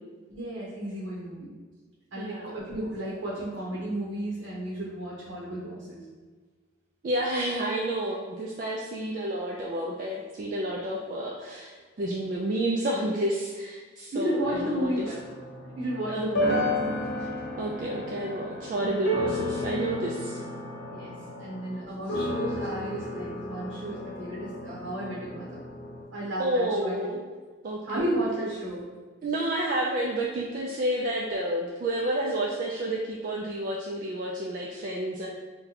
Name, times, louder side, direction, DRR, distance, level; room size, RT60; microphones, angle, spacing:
voice 1, 0.3-1.5 2.1-6.0 14.1-15.2 15.8-16.6 20.9-21.1 21.4-25.6 26.1-27.0 27.9-28.8, right 1 dB, 75° right, -6 dB, 0.7 m, -33 dB
voice 2, 2.2-2.6 7.0-15.1 16.1-16.6 17.2-17.3 17.6-20.4 26.4-27.2 27.6-28.0 28.4-28.5 29.2-35.3, right 1 dB, 45° right, -3 dB, 0.3 m, -30 dB
sound 1, 14.4-26.0, left 1 dB, 60° left, 0.6 m, -33 dB
2.7 x 2.2 x 3.9 m, 1.4 s
head